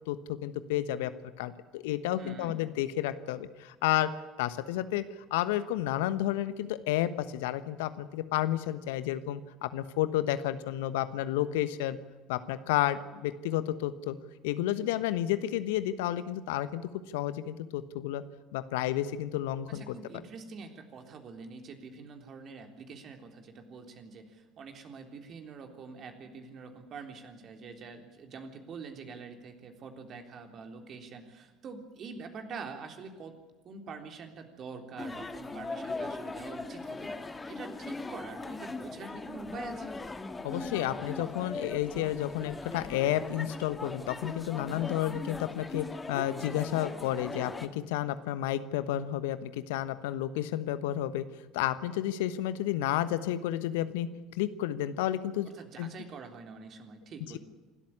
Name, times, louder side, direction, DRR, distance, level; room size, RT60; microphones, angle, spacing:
voice 1, 0.1-1.1 1.4-4.1 4.4-5.0 5.3-12.0 12.3-14.2 14.4-16.8 17.1-18.2 18.5-19.9 40.4-51.2 51.5-54.1 54.4-55.5 55.8-55.9, left 13 dB, 70° left, 13 dB, 1.2 m, -31 dB
voice 2, 2.2-2.5 19.7-33.4 33.6-40.0 55.4-57.4, right 4 dB, 45° right, 5 dB, 3.6 m, -45 dB
sound 1, 35.0-47.7, left 3 dB, 20° left, 1.9 m, -40 dB
27.0 x 13.0 x 9.9 m, 1.2 s
figure-of-eight pair, 65°, 0 cm